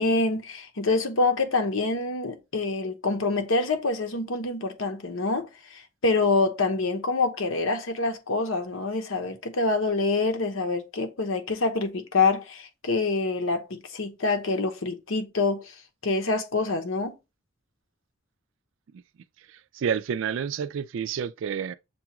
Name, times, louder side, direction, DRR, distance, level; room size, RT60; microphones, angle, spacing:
voice 1, 0.0-15.7 16.0-17.1, left 3 dB, 80° left, 0.9 m, -26 dB
voice 2, 19.7-21.7, right 7 dB, 70° right, 0.3 m, -29 dB
6.9 x 2.3 x 2.9 m
head